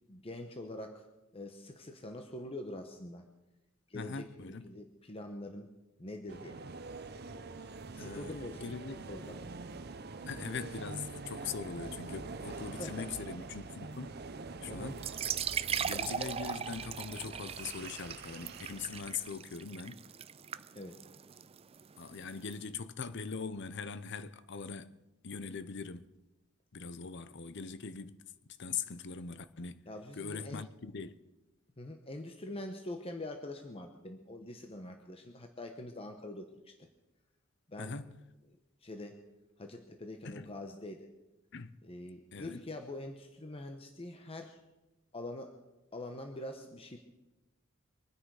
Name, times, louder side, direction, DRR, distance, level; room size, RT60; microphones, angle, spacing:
voice 1, 0.1-1.1 1.3-3.3 3.9-5.7 6.0-6.6 7.9-8.7 9.1-9.4 12.8-13.1 14.7-14.9 20.7-21.0 29.9-30.6 31.8-36.9 37.7-38.0 38.8-39.2 39.6-41.1 41.8-44.6 45.1-45.6 45.9-47.0, left 1 dB, 30° left, 1.0 m, -44 dB
voice 2, 3.9-4.7 8.0-9.0 10.3-14.1 14.6-15.1 15.8-20.0 22.0-26.1 26.7-28.2 28.6-29.9 30.2-31.2 37.8-38.2 40.2-40.5 41.5-41.7 42.3-42.6, left 5 dB, 60° left, 0.7 m, -41 dB
sound 1, 6.3-19.3, right 3 dB, 50° right, 0.7 m, -45 dB
sound 2, 14.9-22.5, right 8 dB, 30° right, 0.4 m, -39 dB
24.5 x 9.8 x 4.9 m
head